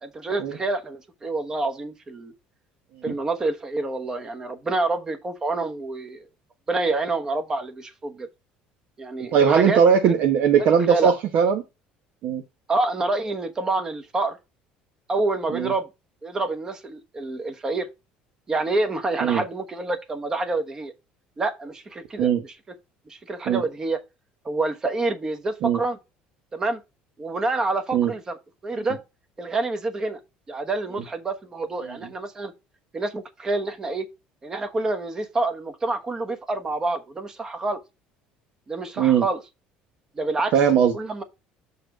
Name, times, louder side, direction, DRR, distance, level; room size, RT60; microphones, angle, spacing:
voice 1, 0.0-2.3 3.0-6.3 6.7-8.3 9.0-10.1 10.6-11.1 12.7-14.4 15.1-15.9 16.2-17.9 18.5-20.9 21.4-22.5 23.1-24.0 24.4-26.0 26.5-26.8 27.2-28.4 28.6-29.0 29.4-30.2 30.5-32.5 32.9-34.1 34.4-37.8 38.7-39.4 40.2-40.5 40.9-41.2, right 2 dB, 20° right, 1.1 m, -27 dB
voice 2, 9.3-11.6 12.2-12.4 15.5-15.7 19.2-19.4 22.2-22.4 23.5-23.6 25.6-25.8 27.9-28.1 31.8-32.0 39.0-39.2 40.5-40.9, right 7 dB, 55° right, 1.0 m, -19 dB
6.8 x 4.2 x 4.8 m
cardioid pair, 140°, 3 cm